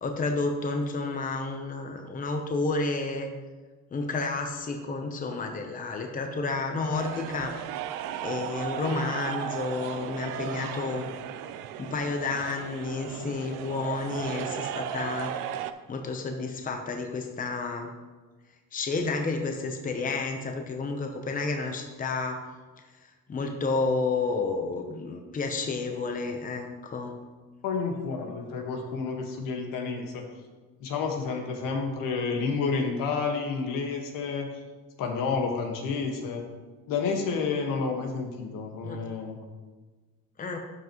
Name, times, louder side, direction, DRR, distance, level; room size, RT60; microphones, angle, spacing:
voice 1, 0.0-3.3 3.9-7.5 8.2-11.0 11.8-15.3 15.9-17.9 18.7-22.4 23.3-27.2 38.8-39.0 40.4-40.6, left 3 dB, 25° left, 4 dB, 0.8 m, -30 dB
sound 1, 6.9-15.7, right 10 dB, 75° right, 0.6 m, -36 dB
voice 2, 27.6-30.3 30.8-34.5 35.0-36.4 36.9-39.4, left 5 dB, 70° left, 2 dB, 1.6 m, -30 dB
12.0 x 6.0 x 3.1 m, 1.3 s
cardioid pair, 125°, 34 cm